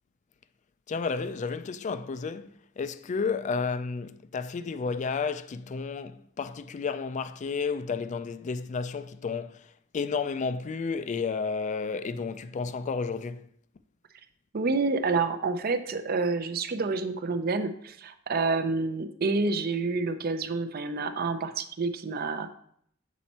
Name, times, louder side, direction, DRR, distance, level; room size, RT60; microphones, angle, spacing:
voice 1, 0.9-2.5 2.8-9.7 9.9-13.5, left 5 dB, 35° left, 0.3 m, -32 dB
voice 2, 14.5-22.5, right 3 dB, 50° right, 0.5 m, -28 dB
7.3 x 4.3 x 4.2 m
head